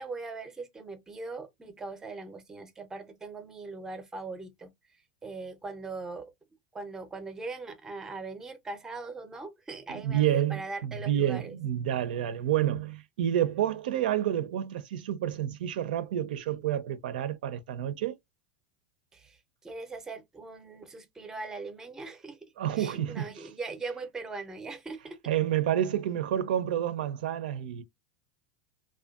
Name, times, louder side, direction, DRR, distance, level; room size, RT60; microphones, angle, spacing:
voice 1, 0.0-4.7 5.2-6.3 6.7-11.5 19.1-19.4 19.6-25.2, right 3 dB, 10° right, 0.4 m, -40 dB
voice 2, 9.9-18.2 22.6-23.5 25.3-27.8, right 11 dB, 90° right, 0.4 m, -29 dB
2.6 x 2.2 x 2.4 m
supercardioid pair, 150°, 5 cm